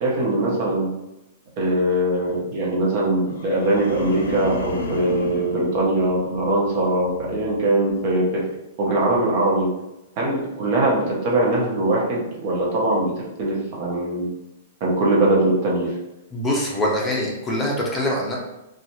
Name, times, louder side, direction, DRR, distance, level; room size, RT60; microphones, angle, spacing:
voice 1, 0.0-0.9 1.6-8.4 8.8-9.7 10.2-13.1 13.4-14.3 14.8-15.9, right 1 dB, 45° right, -4 dB, 0.9 m, -21 dB
sound 1, 3.2-6.7 7.1-7.5, left 3 dB, 80° left, 0.5 m, -32 dB
voice 2, 16.3-18.4, left 1 dB, 15° left, -2 dB, 0.6 m, -23 dB
2.9 x 2.3 x 2.7 m, 0.93 s
hypercardioid pair, 130°, 0 cm